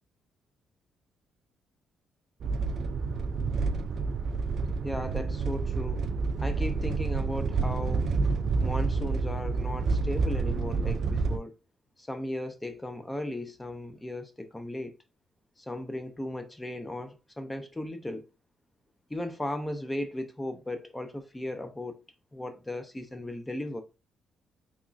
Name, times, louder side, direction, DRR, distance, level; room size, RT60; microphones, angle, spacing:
sound 1, 2.4-11.4, right 4 dB, 60° right, 0.3 m, -29 dB
voice 1, 4.8-6.1 6.4-8.1 8.6-11.5 12.0-14.9 15.6-18.3 19.1-22.0 22.3-23.8, left 1 dB, 15° left, 0.5 m, -36 dB
3.6 x 3.0 x 2.5 m
cardioid pair, 90°, 0 cm